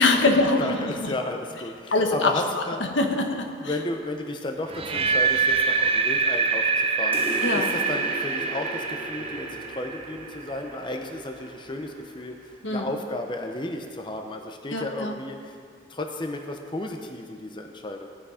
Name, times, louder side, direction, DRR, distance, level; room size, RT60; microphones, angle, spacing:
voice 1, 0.0-1.1 1.9-3.7 7.4-7.7 12.6-12.9 14.7-15.1, left 2 dB, 80° left, 4 dB, 1.3 m, -24 dB
voice 2, 0.6-2.9 3.6-15.6 15.9-18.1, left 1 dB, 25° left, 3 dB, 0.7 m, -33 dB
sound 1, 4.7-10.7, right 5 dB, 30° right, 0.6 m, -25 dB
sound 2, 7.1-12.2, right 1 dB, 10° right, 2.6 m, -37 dB
16.0 x 9.8 x 5.0 m, 2.3 s
head